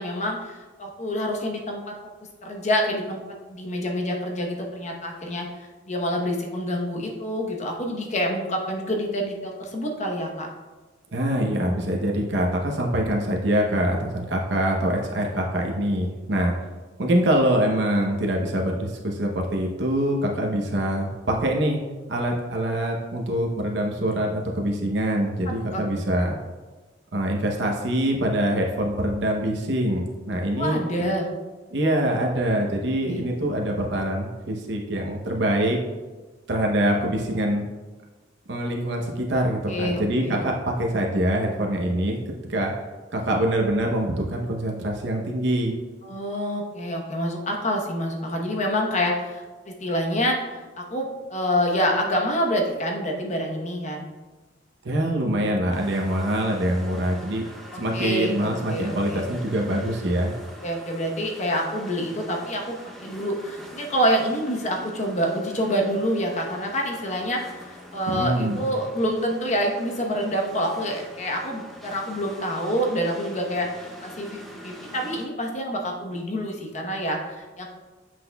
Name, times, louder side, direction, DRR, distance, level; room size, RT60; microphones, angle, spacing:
voice 1, 0.0-1.8 2.4-3.2 3.5-10.5 25.7-26.0 30.6-31.3 33.1-33.2 39.7-40.4 46.0-50.6 50.9-54.0 57.9-59.3 60.6-62.7 63.0-77.7, equal, 40° left, 1 dB, 1.0 m, -27 dB
voice 2, 11.1-16.5 17.0-21.8 22.1-26.4 27.1-30.8 31.7-35.8 36.5-37.6 38.5-42.2 42.5-42.7 43.1-45.7 54.8-57.5 57.7-60.3 68.1-68.7, right 1 dB, 65° right, 0 dB, 0.8 m, -24 dB
sound 1, 55.7-75.3, equal, ahead, 0.7 m, -44 dB
7.7 x 6.0 x 2.3 m, 1.3 s
head